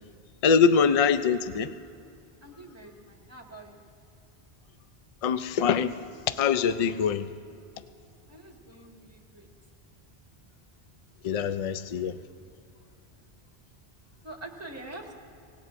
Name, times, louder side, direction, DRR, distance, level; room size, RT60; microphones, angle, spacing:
voice 1, 0.4-1.7 5.2-5.9 6.3-7.3 11.2-12.2, left 6 dB, 50° left, 12 dB, 0.4 m, -23 dB
voice 2, 2.4-3.8 8.3-9.5 14.2-15.1, right 2 dB, 15° right, 0 dB, 1.6 m, -45 dB
25.0 x 18.5 x 2.5 m, 2.4 s
omnidirectional pair, 1.1 m